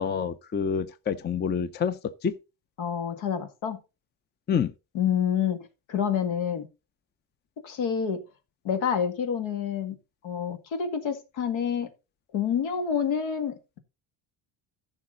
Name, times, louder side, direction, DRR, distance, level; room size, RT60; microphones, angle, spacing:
voice 1, 0.0-2.0 2.2-2.3 4.5-4.7, left 7 dB, 25° left, 0.5 m, -27 dB
voice 2, 2.8-3.8 4.9-5.6 5.9-6.7 7.6-8.2 8.6-10.0 10.2-11.9 12.3-13.8, left 7 dB, 75° left, 2.2 m, -28 dB
14.0 x 6.3 x 4.0 m
cardioid pair, 145°, 47 cm